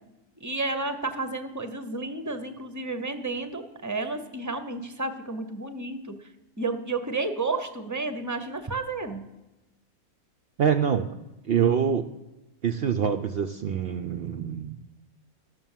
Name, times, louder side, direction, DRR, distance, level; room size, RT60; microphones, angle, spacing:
voice 1, 0.4-6.1 6.6-9.2, right 3 dB, 20° right, 8 dB, 0.6 m, -31 dB
voice 2, 10.6-11.1 11.5-12.0 12.6-14.8, right 7 dB, 70° right, 8 dB, 0.6 m, -25 dB
13.0 x 6.5 x 7.3 m, 1.0 s
omnidirectional pair, 1.5 m